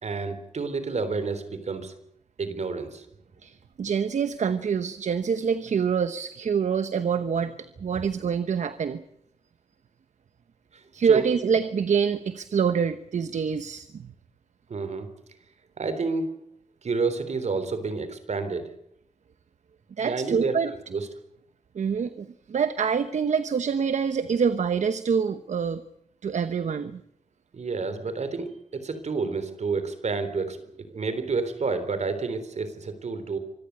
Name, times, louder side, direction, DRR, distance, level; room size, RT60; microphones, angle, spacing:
voice 1, 0.0-1.9 2.4-3.1 10.7-11.2 14.7-15.1 15.8-16.3 16.8-18.7 20.0-21.1 27.5-33.4, right 4 dB, 70° right, 11 dB, 3.7 m, -30 dB
voice 2, 3.4-9.0 10.9-14.1 20.0-20.7 21.7-25.8 26.2-27.0, right 6 dB, 90° right, 11 dB, 1.0 m, -26 dB
25.5 x 14.5 x 9.5 m, 0.74 s
cardioid pair, 70°, 12 cm